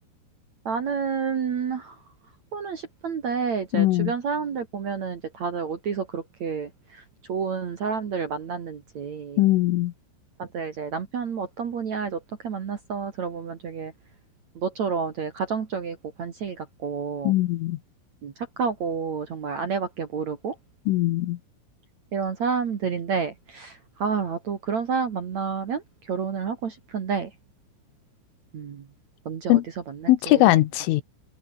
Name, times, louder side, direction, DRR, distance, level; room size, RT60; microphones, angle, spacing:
voice 1, 0.7-1.9 2.5-6.7 7.3-9.4 10.4-13.9 14.6-17.3 18.2-20.5 22.1-25.8 26.1-27.3 28.5-28.8 29.3-29.6 29.9-30.4, right 6 dB, 50° right, 2.3 m, -29 dB
voice 2, 3.7-4.1 9.4-9.9 17.2-17.8 20.9-21.4 29.5-29.6 30.1-31.0, left 17 dB, 80° left, 3.5 m, -20 dB
omnidirectional pair, 5.8 m